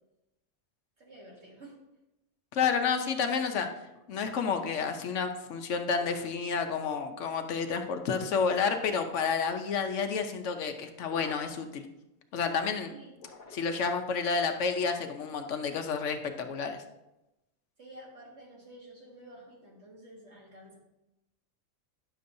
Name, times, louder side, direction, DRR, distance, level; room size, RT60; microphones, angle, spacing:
voice 1, 1.0-1.8 12.9-13.2 17.8-20.8, right 1 dB, 55° right, -3 dB, 2.0 m, -51 dB
voice 2, 2.5-3.7 4.1-11.9 12.3-12.9 13.5-16.8, left 5 dB, 70° left, 6 dB, 1.0 m, -30 dB
sound 1, 5.9-6.5 8.5-9.1 11.0-11.7 13.1-13.9, left 3 dB, 45° left, 0.8 m, -50 dB
10.0 x 6.8 x 2.6 m, 0.94 s
omnidirectional pair, 1.4 m